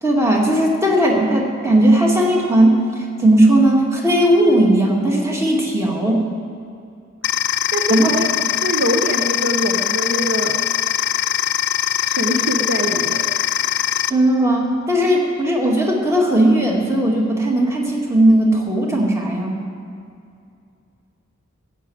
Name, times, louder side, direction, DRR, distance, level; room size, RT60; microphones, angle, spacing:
voice 1, 0.0-2.8 3.2-6.2 7.9-8.1 14.1-19.6, right 1 dB, 15° right, -1 dB, 2.0 m, -16 dB
sound 1, 7.2-14.1, left 11 dB, 60° left, 0.4 m, -21 dB
voice 2, 7.7-8.3 8.6-10.6 12.0-13.3, equal, 65° right, 4 dB, 0.9 m, -23 dB
14.5 x 7.4 x 8.6 m, 2.5 s
head